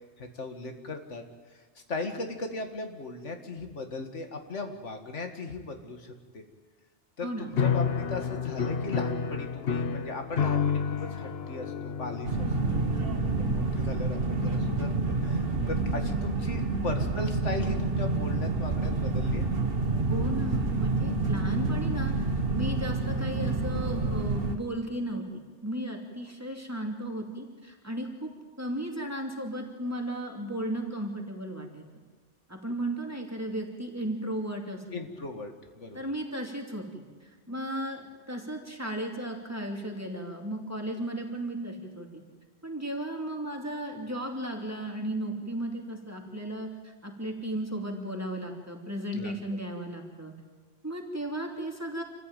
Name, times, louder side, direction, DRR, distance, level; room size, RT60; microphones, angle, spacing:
voice 1, 0.2-1.2 1.9-6.4 7.2-13.1 13.4-19.5 34.9-36.0 49.2-49.3, left 3 dB, 85° left, 5 dB, 2.2 m, -37 dB
voice 2, 7.2-7.5 20.1-22.1 22.5-28.3 28.6-31.8 32.5-35.1 35.9-42.2 42.6-50.3 50.8-52.0, right 1 dB, 15° right, 1 dB, 2.9 m, -35 dB
sound 1, 7.5-15.9, left 6 dB, 60° left, 1.1 m, -31 dB
sound 2, 12.2-24.6, right 3 dB, 55° right, 1.8 m, -28 dB
27.0 x 14.5 x 9.1 m, 1.4 s
omnidirectional pair, 1.2 m